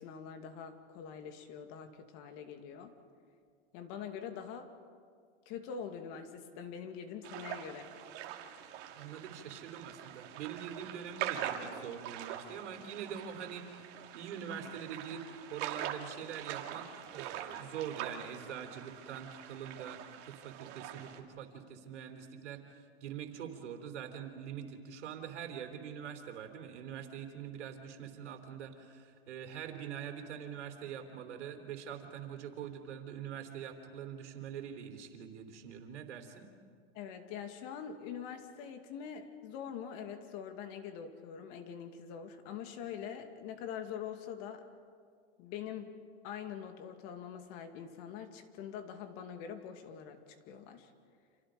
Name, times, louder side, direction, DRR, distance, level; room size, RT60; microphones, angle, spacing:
voice 1, 0.0-2.9 3.7-4.7 5.5-7.9 36.9-44.7 45.4-45.9 46.2-50.2 50.5-50.9, left 8 dB, 45° left, 6 dB, 2.4 m, -44 dB
sound 1, 7.2-21.2, right 10 dB, 45° right, 2.3 m, -43 dB
voice 2, 8.9-13.9 14.1-15.2 15.5-36.5, right 8 dB, 80° right, 5 dB, 3.6 m, -44 dB
30.0 x 27.5 x 5.3 m, 2.1 s
supercardioid pair, 140°, 35 cm